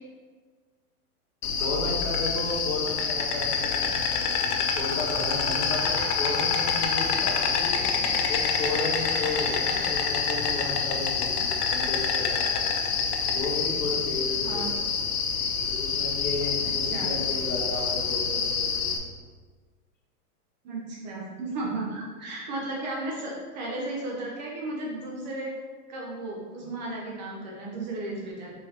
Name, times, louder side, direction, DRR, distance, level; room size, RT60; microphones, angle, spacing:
Insect, 1.4-19.0, left 5 dB, 90° left, 0.7 m, -27 dB
voice 1, 1.6-4.0 4.7-7.9 8.3-12.6 13.3-14.8 15.5-18.9 26.6-26.7, left 2 dB, 60° left, -3 dB, 1.4 m, -33 dB
voice 2, 16.8-17.1 20.6-25.5 25.9-28.5, right 2 dB, 30° right, -3 dB, 0.5 m, -34 dB
4.6 x 2.8 x 3.3 m, 1.5 s
supercardioid pair, 160°, 44 cm